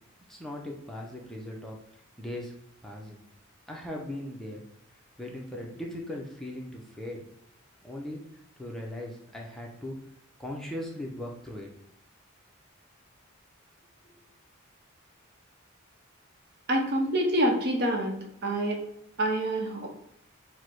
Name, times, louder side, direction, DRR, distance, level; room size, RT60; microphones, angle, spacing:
voice 1, 0.3-2.5 2.8-3.2 3.7-4.6 5.2-7.3 7.8-10.0 10.4-11.7 14.0-14.2, left 1 dB, ahead, -2 dB, 0.5 m, -39 dB
voice 2, 16.7-18.2 18.4-18.8 19.2-19.9, right 1 dB, 55° right, 2 dB, 0.8 m, -26 dB
4.7 x 2.1 x 4.4 m, 0.76 s
head